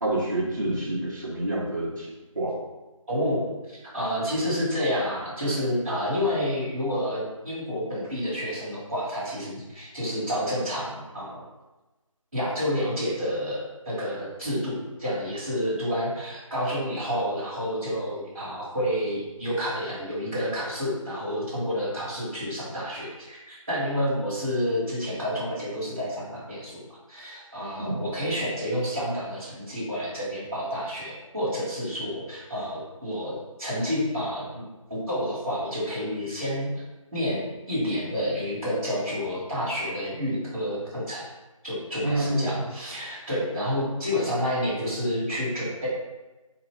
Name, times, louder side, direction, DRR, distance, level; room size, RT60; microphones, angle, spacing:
voice 1, 0.0-2.6 27.8-28.0 42.0-42.5, right 1 dB, 35° right, -7 dB, 0.6 m, -28 dB
voice 2, 3.1-11.4 12.3-26.8 27.1-33.3 33.6-34.6 34.9-36.7 37.1-37.4 37.7-41.3 41.6-45.9, equal, 15° right, -11 dB, 1.2 m, -29 dB
4.0 x 2.9 x 3.5 m, 1.1 s
figure-of-eight pair, 170°, 18 cm